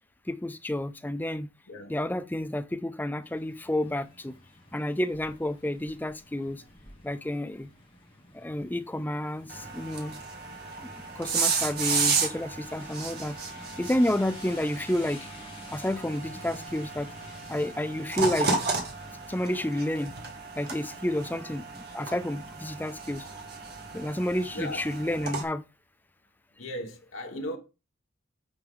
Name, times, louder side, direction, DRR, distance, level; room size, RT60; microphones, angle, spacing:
voice 1, 0.3-1.5 1.9-4.4 4.7-6.6 7.0-7.7 8.3-10.2 10.8-13.4 13.8-15.3 15.7-17.1 17.5-18.5 19.3-20.1 20.6-23.4 23.9-25.6, left 1 dB, 10° left, 0.4 m, -30 dB
sound 1, 3.2-19.5, left 2 dB, 30° left, 2.7 m, -51 dB
sound 2, 9.5-25.4, right 4 dB, 50° right, 1.9 m, -33 dB
voice 2, 26.6-27.6, equal, 80° left, 1.3 m, -36 dB
9.0 x 4.7 x 3.7 m
head